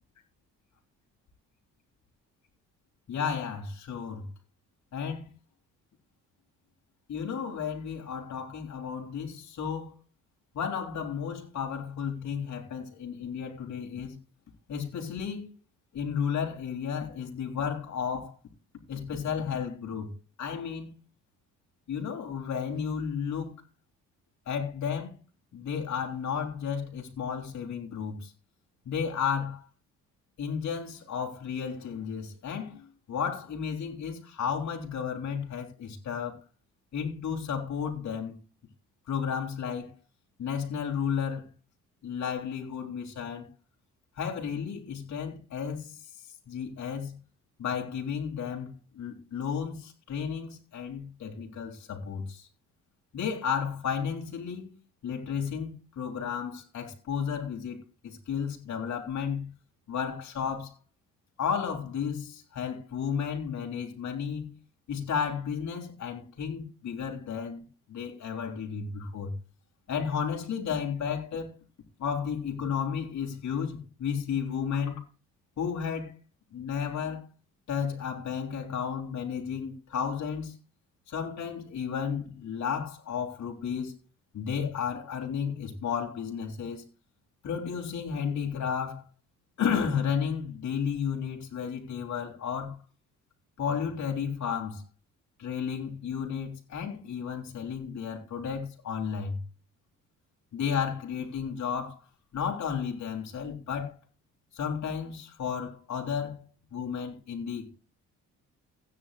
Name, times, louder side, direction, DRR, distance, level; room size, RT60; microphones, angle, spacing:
voice 1, 3.1-4.3 4.9-5.2 7.1-9.9 10.5-14.2 14.7-15.5 15.9-18.4 18.9-20.1 20.4-20.9 21.9-23.5 24.5-25.2 25.5-28.3 28.8-29.7 30.4-36.4 36.9-38.4 39.1-39.9 40.4-41.5 42.0-43.5 44.2-46.0 46.5-47.2 47.6-52.5 53.1-54.8 55.0-59.5 59.9-60.7 61.4-64.6 64.9-67.6 67.9-69.3 69.9-71.6 72.0-75.0 75.6-76.1 76.5-77.3 77.7-80.5 81.1-84.0 84.3-86.8 87.4-89.0 89.6-92.8 93.6-94.8 95.4-99.4 100.5-102.0 102.3-103.9 104.5-106.4 106.7-107.7, left 7 dB, 65° left, 3.3 m, -33 dB
16.5 x 9.5 x 2.4 m
cardioid pair, 90°, 30 cm